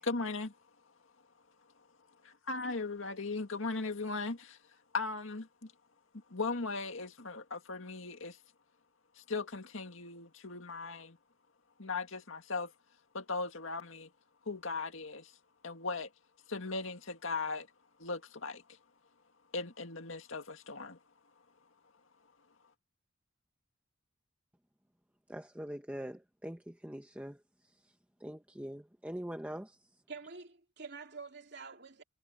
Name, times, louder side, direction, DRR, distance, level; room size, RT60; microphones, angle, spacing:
voice 1, 0.0-0.5 2.2-4.6 4.9-5.7 6.3-8.4 9.2-11.2 11.8-12.7 13.1-14.1 14.5-15.3 15.6-16.1 16.5-17.7 18.0-18.6 19.5-21.0, left 3 dB, 75° left, 2.1 m, -38 dB
voice 2, 25.3-27.4 27.7-27.9 28.2-29.9, equal, 5° right, 1.0 m, -43 dB
voice 3, 30.1-32.0, right 4 dB, 55° right, 3.3 m, -47 dB
head